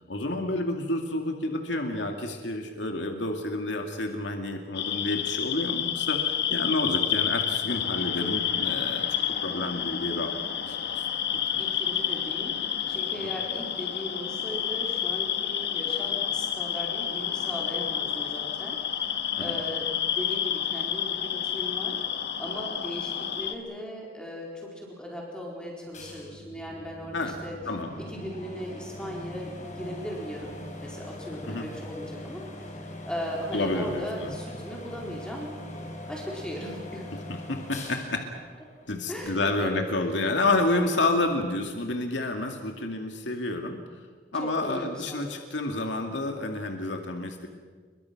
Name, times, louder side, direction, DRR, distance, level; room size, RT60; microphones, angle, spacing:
voice 1, 0.1-10.3 10.7-11.1 11.3-11.6 13.2-13.3 17.5-17.6 19.4-19.6 27.1-27.3 27.7-28.0 31.5-31.7 33.5-34.3 37.3-38.2 38.9-43.8 44.3-47.5, left 2 dB, 90° left, 3 dB, 2.4 m, -29 dB
sound 1, 4.7-23.5, left 9 dB, 65° left, 1.6 m, -29 dB
voice 2, 6.6-7.0 11.6-12.6 12.9-19.8 20.1-22.0 22.4-27.6 28.1-32.7 33.1-37.1 39.1-39.9 44.3-45.4, equal, 5° left, -3 dB, 4.5 m, -38 dB
sound 2, 25.9-39.4, left 1 dB, 45° left, 4.8 m, -42 dB
29.0 x 23.0 x 6.0 m, 1.5 s
head